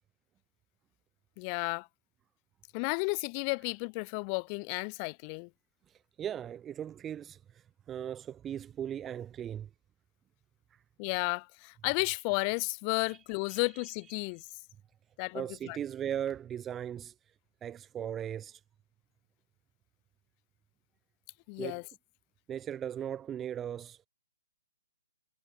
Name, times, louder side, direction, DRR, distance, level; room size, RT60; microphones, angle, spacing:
voice 1, 1.4-1.9 2.7-5.5 11.0-14.4 15.2-15.8 21.5-21.8, left 40 dB or more, 30° left, 1.2 m, -33 dB
voice 2, 5.9-9.7 10.7-10.8 13.0-13.2 13.5-13.9 14.2-14.3 15.3-17.1 17.6-18.6 21.6-21.8 22.5-24.1, right 9 dB, 15° right, 2.4 m, -38 dB
figure-of-eight pair, 130°, 0 cm